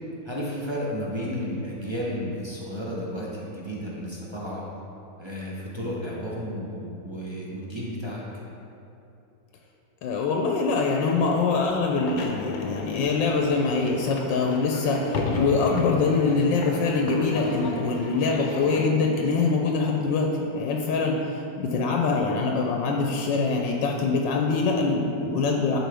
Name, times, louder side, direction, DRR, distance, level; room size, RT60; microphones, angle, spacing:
voice 1, 0.2-4.7 5.2-8.2, equal, 30° right, -5 dB, 0.5 m, -32 dB
voice 2, 10.0-25.8, left 4 dB, 85° left, 1 dB, 1.3 m, -24 dB
sound 1, 11.8-18.9, left 3 dB, 65° left, 1.0 m, -34 dB
10.5 x 4.5 x 3.4 m, 2.8 s
omnidirectional pair, 2.0 m